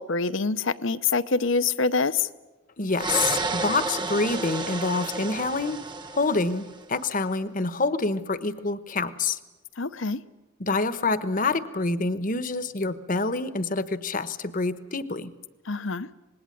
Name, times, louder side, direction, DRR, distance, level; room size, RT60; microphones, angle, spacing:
voice 1, 0.0-2.3 9.8-10.2 15.7-16.1, left 4 dB, 60° left, 14 dB, 0.8 m, -25 dB
voice 2, 2.8-5.8 6.1-9.4 10.6-15.3, left 3 dB, 40° left, 13 dB, 1.1 m, -27 dB
sound 1, 2.9-6.8, right 3 dB, 20° right, 1.1 m, -31 dB
26.0 x 20.5 x 9.3 m, 1.1 s
head